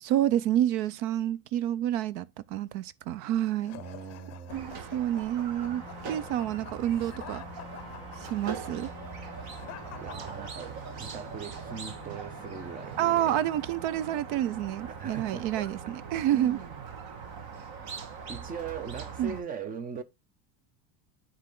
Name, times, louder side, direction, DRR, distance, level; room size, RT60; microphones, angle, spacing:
voice 1, 0.0-3.8 4.2-5.8 6.1-7.4 8.3-8.9 13.0-16.6 19.2-19.4, right 12 dB, 65° right, 0.7 m, -29 dB
sound 1, 3.6-11.0, left 12 dB, 35° left, 0.6 m, -48 dB
voice 2, 3.8-4.7 10.0-13.4 13.9-14.1 15.0-15.9 16.3-16.9 18.3-20.0, right 6 dB, 20° right, 0.3 m, -40 dB
Squeak, 4.5-19.4, right 6 dB, 50° right, 1.5 m, -42 dB
sound 2, 5.5-14.8, left 6 dB, 10° left, 0.9 m, -49 dB
9.7 x 3.7 x 3.7 m
cardioid pair, 145°, 49 cm